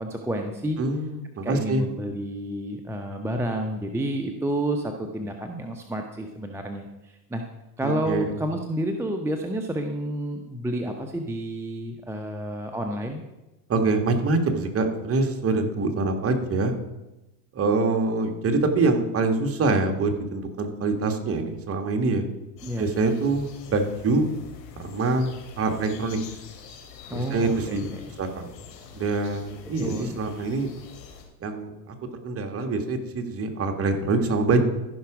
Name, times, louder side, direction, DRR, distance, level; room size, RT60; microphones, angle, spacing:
voice 1, 0.0-0.8 1.4-7.4 7.8-13.2 22.6-22.9 27.1-28.1 29.8-30.2, right 1 dB, 5° right, 3 dB, 0.8 m, -30 dB
voice 2, 0.8-1.8 7.8-8.2 13.7-16.7 17.5-22.2 22.8-24.3 24.8-25.3 25.6-26.2 27.1-27.9 28.2-28.5 28.9-30.7 31.4-31.7 32.2-34.6, right 3 dB, 30° right, 4 dB, 1.6 m, -25 dB
sound 1, 22.6-31.2, left 7 dB, 80° left, 2.9 m, -45 dB
14.0 x 5.9 x 4.9 m, 1.0 s
hypercardioid pair, 100°, 49 cm